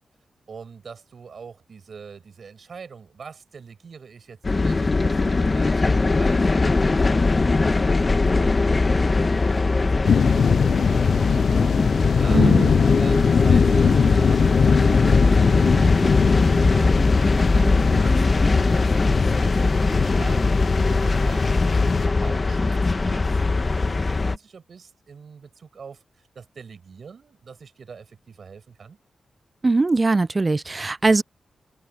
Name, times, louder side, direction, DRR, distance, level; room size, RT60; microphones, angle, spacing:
voice 1, 0.5-11.6 12.2-12.4 13.0-29.0, right 6 dB, 65° right, 7.5 m, -43 dB
sound 1, 4.4-24.4, left 3 dB, 40° left, 1.6 m, -20 dB
sound 2, 10.0-22.1, left 6 dB, 75° left, 0.4 m, -22 dB
voice 2, 12.3-12.7 17.6-18.0 29.6-31.2, right 3 dB, 35° right, 0.4 m, -21 dB
cardioid pair, 55°, 0 cm